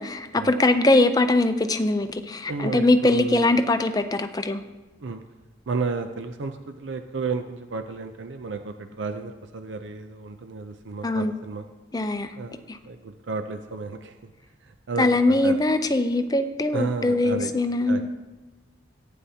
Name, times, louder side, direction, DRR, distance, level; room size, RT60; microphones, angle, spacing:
voice 1, 0.0-4.6 11.0-11.3 11.9-12.3 12.7-12.8 15.0-18.1, left 2 dB, 20° left, 8 dB, 0.5 m, -22 dB
voice 2, 2.5-3.5 5.0-5.2 5.7-11.6 12.4-14.2 14.6-15.6 16.7-17.5 17.9-18.1, right 4 dB, 75° right, 7 dB, 0.5 m, -32 dB
14.5 x 9.5 x 2.8 m, 1.2 s
head